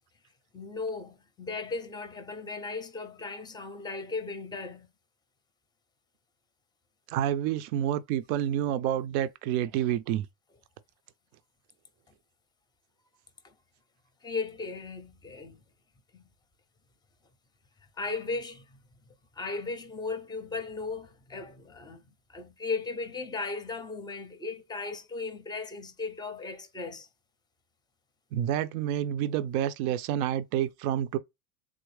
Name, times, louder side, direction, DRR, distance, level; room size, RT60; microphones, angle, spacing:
voice 1, 0.5-4.9 13.4-13.5 14.2-15.6 16.1-16.2 18.0-18.6 19.4-22.0 22.3-27.1, left 4 dB, 10° left, 0.5 m, -36 dB
voice 2, 7.1-10.3 28.3-31.2, right 11 dB, 80° right, 0.5 m, -28 dB
3.5 x 2.1 x 3.1 m
supercardioid pair, 120°, 43 cm